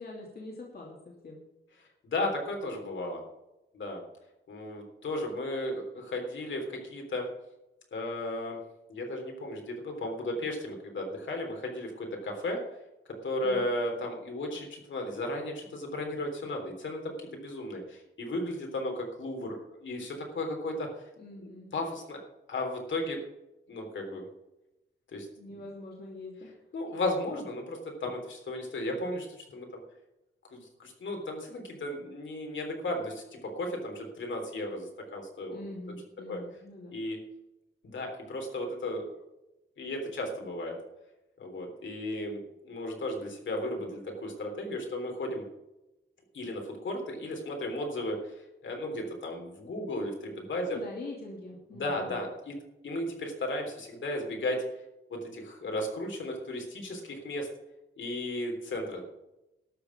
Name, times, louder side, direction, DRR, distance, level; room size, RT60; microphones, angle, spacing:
voice 1, 0.0-1.4 13.4-13.7 21.2-21.7 25.4-26.5 35.5-37.0 50.7-52.2, left 2 dB, 50° left, -2 dB, 2.8 m, -44 dB
voice 2, 2.0-3.2 3.7-4.0 4.5-7.3 7.9-8.6 8.9-12.6 13.2-20.9 21.4-22.2 22.5-23.2 23.7-24.3 25.1-25.6 26.7-29.7 30.5-35.6 36.3-36.4 36.9-37.2 37.8-39.1 39.8-40.8 41.4-45.4 46.3-48.3 48.6-50.8 51.7-52.6 52.8-54.6 55.1-57.5 58.0-59.0, left 1 dB, 65° left, 2 dB, 3.5 m, -35 dB
12.5 x 6.9 x 8.4 m, 0.93 s
wide cardioid pair, 175°, 21 cm